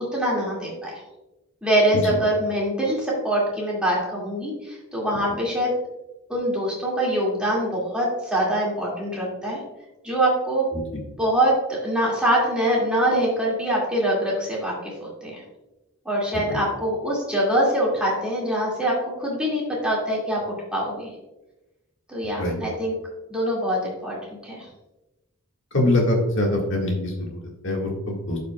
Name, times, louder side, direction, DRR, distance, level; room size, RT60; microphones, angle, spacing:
voice 1, 0.1-1.0 1.6-5.7 6.3-9.6 10.0-10.7 11.2-14.7 15.0-15.4 16.1-20.4 20.7-21.1 22.1-22.9 23.3-24.2 24.4-24.7, right 1 dB, 5° right, -5 dB, 2.1 m, -24 dB
voice 2, 25.7-28.4, left 1 dB, 55° left, -1 dB, 1.8 m, -24 dB
12.0 x 5.1 x 2.3 m, 1.0 s
head